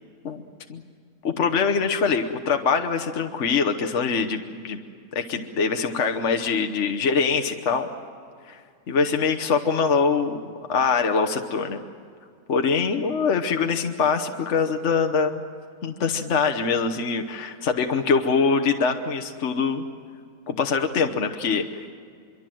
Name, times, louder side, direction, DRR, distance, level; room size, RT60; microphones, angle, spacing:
voice 1, 1.2-4.8 5.1-7.9 8.5-8.6 8.9-10.4 10.7-11.8 12.5-15.4 15.8-19.8 20.5-21.9, left 5 dB, 55° left, 6 dB, 1.4 m, -23 dB
24.5 x 24.0 x 7.7 m, 2.3 s
omnidirectional pair, 1.6 m